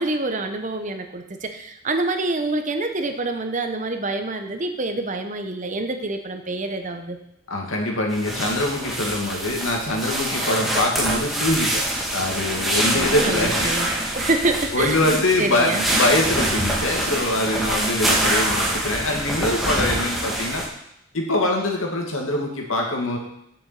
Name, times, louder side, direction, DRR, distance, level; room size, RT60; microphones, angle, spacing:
voice 1, 0.0-7.2 12.9-15.0 15.4-15.8, right 2 dB, 35° right, 6 dB, 0.9 m, -26 dB
voice 2, 7.5-11.8 12.1-14.0 14.7-20.6 21.1-23.2, left 1 dB, 80° left, 1 dB, 2.1 m, -23 dB
sound 1, 8.1-20.7, right 1 dB, ahead, 1.7 m, -25 dB
7.0 x 6.9 x 7.8 m, 0.77 s
head